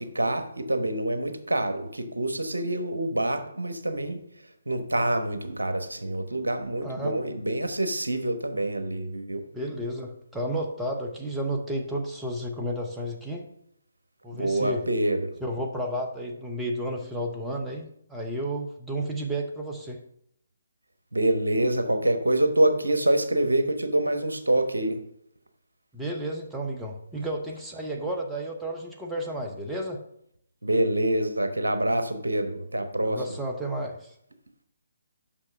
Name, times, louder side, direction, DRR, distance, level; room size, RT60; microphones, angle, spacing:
voice 1, 0.0-4.2 4.7-9.4 14.3-15.3 21.1-25.0 30.6-33.2, right 1 dB, 70° right, 8 dB, 1.1 m, -26 dB
voice 2, 6.8-7.1 9.5-13.4 14.2-14.8 15.4-20.0 25.9-30.0 33.0-34.2, right 1 dB, 5° right, 0 dB, 0.9 m, -32 dB
6.0 x 5.8 x 6.3 m, 0.72 s
figure-of-eight pair, 140°, 0 cm